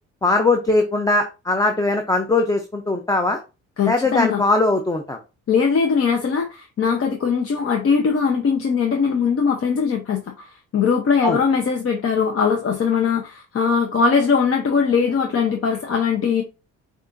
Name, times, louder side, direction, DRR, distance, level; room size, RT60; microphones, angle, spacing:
voice 1, 0.2-3.4 3.9-5.2 11.2-11.4, left 2 dB, 10° left, 0.5 m, -20 dB
voice 2, 3.8-4.4 5.5-16.4, left 6 dB, 50° left, 0.7 m, -20 dB
6.5 x 2.5 x 2.5 m
cardioid pair, 90°, 30 cm